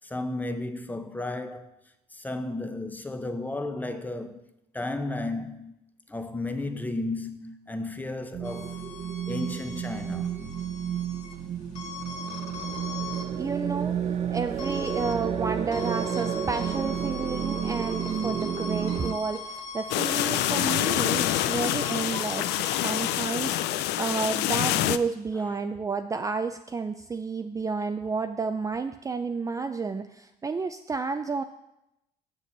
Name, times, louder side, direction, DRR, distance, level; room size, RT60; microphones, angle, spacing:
voice 1, 0.0-1.8 2.1-4.4 4.7-5.7 6.1-8.8 9.3-10.4, left 2 dB, 10° left, 0.8 m, -33 dB
sound 1, 8.3-19.1, right 8 dB, 40° right, 0.8 m, -31 dB
sound 2, 8.4-23.1, left 5 dB, 45° left, 1.7 m, -41 dB
voice 2, 13.3-14.0 14.3-31.4, right 4 dB, 20° right, 0.4 m, -31 dB
sound 3, 19.9-25.0, left 14 dB, 85° left, 0.5 m, -26 dB
6.9 x 6.7 x 7.4 m
cardioid pair, 110°, 17 cm